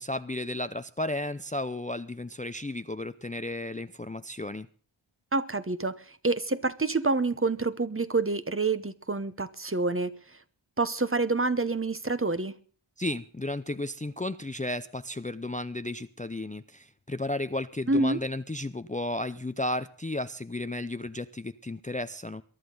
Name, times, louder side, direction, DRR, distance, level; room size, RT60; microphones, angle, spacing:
voice 1, 0.0-4.7 13.0-22.4, left 1 dB, 15° left, 13 dB, 0.6 m, -33 dB
voice 2, 5.3-6.0 6.2-10.1 10.8-12.5 17.9-18.2, right 3 dB, 25° right, 13 dB, 0.9 m, -27 dB
22.5 x 11.5 x 3.9 m, 0.42 s
wide cardioid pair, 55°, 48 cm